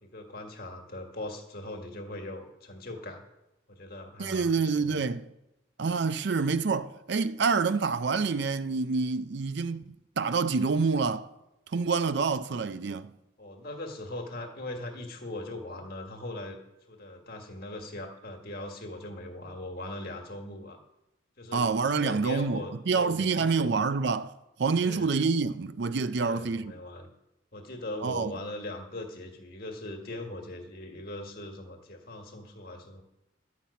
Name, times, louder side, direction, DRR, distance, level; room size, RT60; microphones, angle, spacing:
voice 1, 0.0-3.2 3.7-5.0 13.4-16.6 16.9-20.8 21.4-23.8 24.8-25.2 26.2-27.1 27.5-33.0, left 1 dB, 50° left, 1.6 m, -40 dB
voice 2, 4.2-5.2 5.8-11.3 11.7-13.1 21.5-24.3 24.6-26.7 28.0-28.3, right 4 dB, 60° right, 0.5 m, -27 dB
11.5 x 6.0 x 8.2 m
head